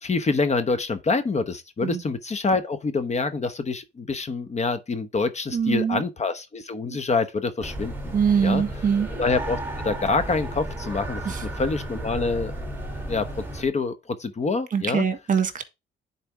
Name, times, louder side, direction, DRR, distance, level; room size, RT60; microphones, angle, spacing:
voice 1, 0.0-8.1 8.4-8.6 9.2-11.2 11.6-12.5 13.1-15.0, left 4 dB, 35° left, 1.0 m, -26 dB
voice 2, 5.5-6.0 6.9-7.0 8.1-9.1 11.2-11.4 14.7-15.6, right 7 dB, 40° right, 1.6 m, -23 dB
sound 1, 7.6-13.6, right 1 dB, 10° right, 2.2 m, -33 dB
10.0 x 4.3 x 3.4 m
cardioid pair, 90°, 20 cm